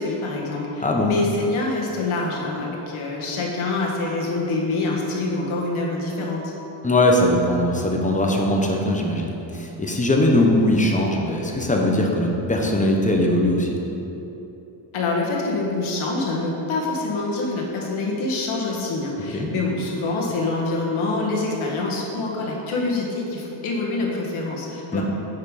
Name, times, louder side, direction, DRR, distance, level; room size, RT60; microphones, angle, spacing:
voice 1, 0.0-6.5 14.9-25.0, left 2 dB, 80° left, -2 dB, 1.7 m, -26 dB
voice 2, 6.8-13.7 19.3-19.5 24.9-25.0, left 1 dB, 15° left, 0 dB, 0.9 m, -20 dB
8.8 x 5.7 x 4.9 m, 3.0 s
cardioid pair, 150°, 48 cm